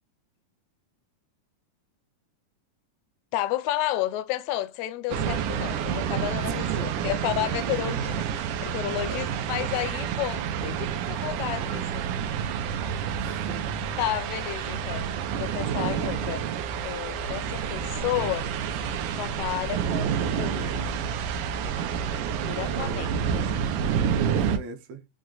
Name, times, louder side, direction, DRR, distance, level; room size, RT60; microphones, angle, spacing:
voice 1, 3.3-10.5 11.1-12.1 14.0-15.1 15.4-16.5 16.8-18.5 19.1-21.0 22.4-23.7, left 13 dB, 80° left, 1.7 m, -31 dB
sound 1, 5.1-24.6, right 7 dB, 85° right, 2.3 m, -29 dB
voice 2, 6.1-7.1 9.1-9.4 10.6-10.8 13.2-13.9 14.6-14.8 15.3-15.5 22.6-23.2 24.2-25.1, right 3 dB, 70° right, 2.0 m, -41 dB
6.3 x 2.2 x 3.8 m
omnidirectional pair, 3.6 m